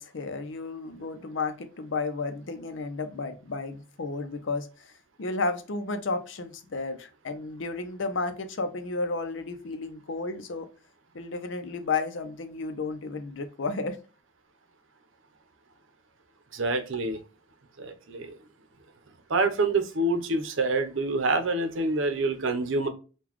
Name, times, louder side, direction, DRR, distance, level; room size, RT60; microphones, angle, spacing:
voice 1, 0.0-4.7 5.2-10.7 11.1-14.0, left 3 dB, 70° left, 9 dB, 0.6 m, -32 dB
voice 2, 16.5-17.2 17.8-18.4 19.3-22.9, right 2 dB, 75° right, 8 dB, 0.7 m, -26 dB
3.8 x 2.3 x 2.9 m, 0.34 s
head